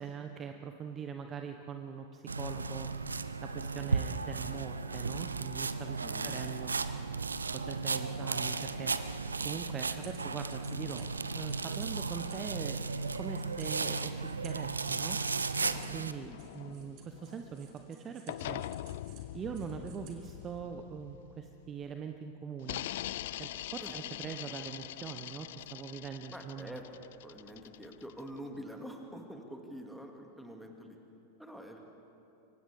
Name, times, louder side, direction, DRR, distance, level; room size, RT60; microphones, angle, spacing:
voice 1, 0.0-2.9 3.4-6.7 7.5-8.9 9.4-15.2 15.9-18.6 19.3-22.8 23.4-26.8, right 7 dB, 25° right, 6 dB, 1.0 m, -42 dB
sound 1, 2.3-16.1, right 4 dB, 75° right, 0.7 m, -35 dB
voice 2, 6.0-6.4 16.2-16.4 23.8-24.0 26.3-26.9 27.2-31.0 31.4-31.8, equal, ahead, 2 dB, 2.4 m, -46 dB
sound 2, 9.1-20.6, right 7 dB, 40° right, 2.9 m, -59 dB
sound 3, 15.6-17.9 18.3-21.9 22.6-28.4, left 14 dB, 55° left, 0.4 m, -43 dB
29.5 x 24.5 x 3.7 m, 2.9 s
figure-of-eight pair, 90°, 0 cm